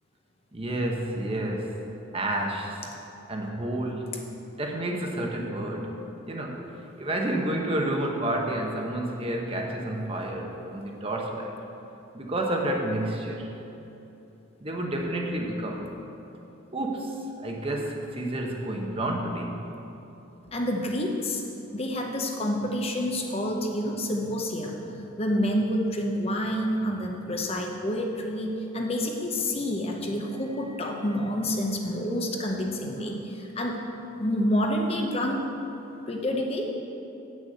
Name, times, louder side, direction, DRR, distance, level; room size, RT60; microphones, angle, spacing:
voice 1, 0.5-1.8 2.1-2.8 3.3-4.2 4.6-6.0 6.3-6.7 7.0-11.5 12.1-13.5 14.6-15.9 16.7-19.6, right 1 dB, 25° right, 1 dB, 0.9 m, -30 dB
voice 2, 20.5-21.4 21.7-24.7 25.2-33.8 34.2-35.4 36.1-36.6, equal, 30° left, 1 dB, 0.8 m, -28 dB
8.3 x 6.4 x 7.7 m, 3.0 s
head